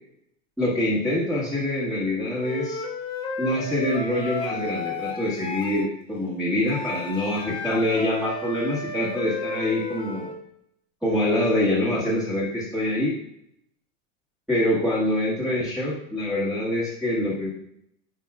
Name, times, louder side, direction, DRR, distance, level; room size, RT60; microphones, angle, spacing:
voice 1, 0.6-2.8 3.4-10.3 11.0-13.1 14.5-17.5, left 1 dB, ahead, -11 dB, 1.5 m, -25 dB
Wind instrument woodwind instrument, 2.4-5.9 6.7-10.4, left 3 dB, 15° left, 0.5 m, -33 dB
10.0 x 5.1 x 2.4 m, 0.74 s
supercardioid pair, 150°, 38 cm